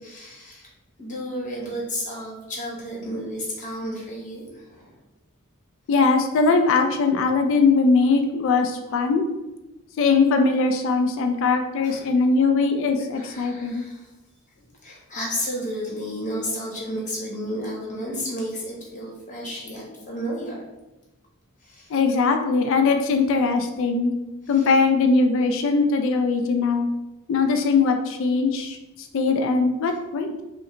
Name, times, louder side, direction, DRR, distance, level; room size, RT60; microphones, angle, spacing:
voice 1, 0.0-0.7 1.0-5.0 10.3-10.4 11.8-12.0 13.1-14.1 14.5-20.6 21.6-21.9 24.5-24.7, equal, 35° left, -3 dB, 1.0 m, -32 dB
voice 2, 5.9-9.3 10.0-13.9 21.9-26.9 27.3-30.4, left 4 dB, 60° left, 6 dB, 0.3 m, -21 dB
4.7 x 2.1 x 3.0 m, 1.0 s
head